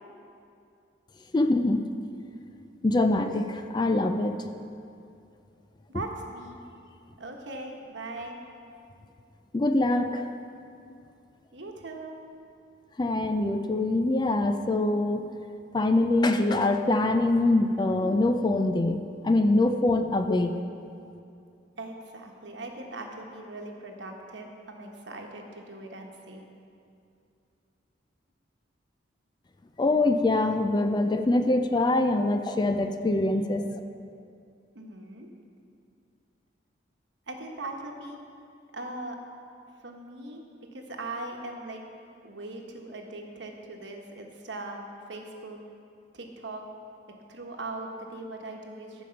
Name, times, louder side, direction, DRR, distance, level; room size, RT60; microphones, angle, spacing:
voice 1, 1.3-1.8 2.8-4.4 9.5-10.3 13.0-15.3 15.7-20.6 29.8-33.6, left 2 dB, 25° left, 8 dB, 0.4 m, -24 dB
voice 2, 5.9-6.6 7.2-8.4 11.5-12.1 21.8-26.5 34.7-35.3 37.3-38.2 38.7-39.2 39.8-41.8 42.2-44.8 45.1-45.6 46.1-46.6 47.3-49.0, right 2 dB, 65° right, 2 dB, 1.1 m, -40 dB
14.5 x 5.1 x 5.8 m, 2.6 s
head